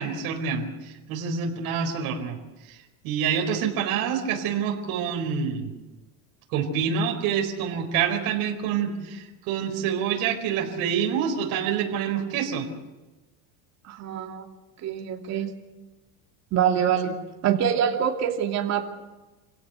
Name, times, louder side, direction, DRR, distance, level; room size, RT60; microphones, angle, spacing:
voice 1, 0.0-2.4 2.6-2.8 3.0-5.7 6.5-12.7, right 7 dB, 55° right, 2 dB, 4.6 m, -27 dB
voice 2, 13.8-14.5 14.8-15.5 16.5-17.1 17.4-18.9, right 8 dB, 40° right, 1 dB, 2.9 m, -25 dB
28.0 x 17.0 x 8.2 m, 1.1 s
cardioid pair, 145°, 41 cm